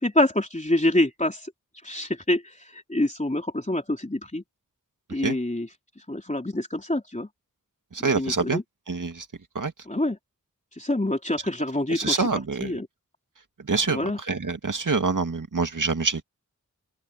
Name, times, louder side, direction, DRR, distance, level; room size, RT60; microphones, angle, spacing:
voice 1, 0.0-1.5 1.8-4.4 5.1-5.7 6.1-7.3 8.1-8.6 9.9-10.2 10.8-12.2 12.6-12.9 13.9-14.2, left 1 dB, 25° left, 3.7 m, -26 dB
voice 2, 7.9-8.6 8.9-9.3 9.6-9.7 11.9-12.8 13.7-16.2, right 4 dB, 80° right, 2.1 m, -26 dB
open air
wide cardioid pair, 60°, 31 cm